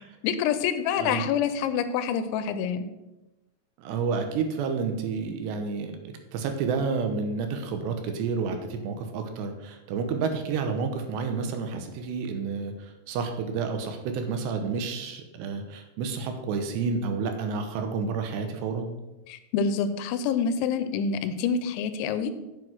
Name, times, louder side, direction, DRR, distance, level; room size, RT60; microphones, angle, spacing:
voice 1, 0.2-2.9 19.3-22.3, left 7 dB, 90° left, 11 dB, 3.1 m, -27 dB
voice 2, 3.8-5.9 6.3-18.9, right 5 dB, 75° right, 6 dB, 3.0 m, -30 dB
7.8 x 7.7 x 6.2 m, 1.0 s
omnidirectional pair, 5.2 m